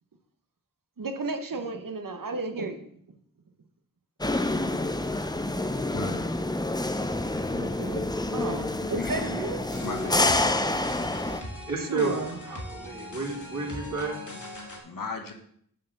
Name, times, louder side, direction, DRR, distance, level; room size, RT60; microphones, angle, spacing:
voice 1, 1.0-2.9 7.5-9.6 11.9-12.4, right 3 dB, 75° right, 7 dB, 1.0 m, -33 dB
sound 1, 4.2-11.4, left 2 dB, 10° left, 0.5 m, -28 dB
voice 2, 5.6-6.3 8.4-8.5 8.9-9.1 9.8-10.4 14.8-15.3, left 3 dB, 75° left, 4 dB, 1.1 m, -36 dB
sound 2, 9.7-14.8, left 1 dB, 60° left, 1.8 m, -40 dB
voice 3, 10.8-15.0, right 3 dB, 55° right, -4 dB, 2.4 m, -34 dB
6.6 x 4.3 x 6.6 m, 0.65 s
wide cardioid pair, 65°, 34 cm